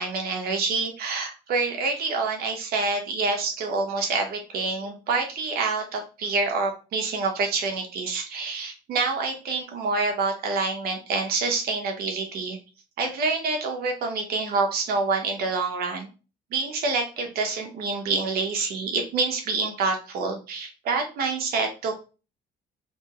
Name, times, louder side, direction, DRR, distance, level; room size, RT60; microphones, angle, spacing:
voice 1, 0.0-12.6 13.0-16.1 16.5-22.0, right 4 dB, 65° right, 3 dB, 0.9 m, -27 dB
3.5 x 3.0 x 2.9 m, 0.33 s
cardioid pair, 110°, 17 cm